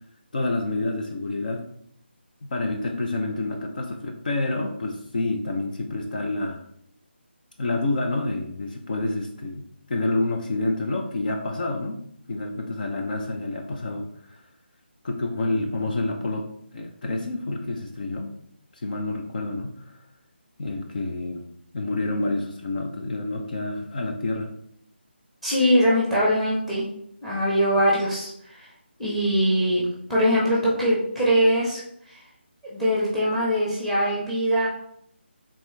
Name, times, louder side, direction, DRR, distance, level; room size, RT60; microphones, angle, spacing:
voice 1, 0.3-1.6 2.4-6.6 7.6-12.0 12.3-14.4 15.0-16.5 16.7-18.3 18.8-19.9 20.6-21.4 21.7-24.5, left 2 dB, 45° left, 2 dB, 0.6 m, -28 dB
voice 2, 25.4-26.8 27.2-28.3 28.6-28.7 29.0-29.8 30.1-31.8 32.7-34.7, equal, ahead, -6 dB, 1.0 m, -22 dB
4.3 x 3.6 x 3.3 m, 0.68 s
figure-of-eight pair, 165°, 6 cm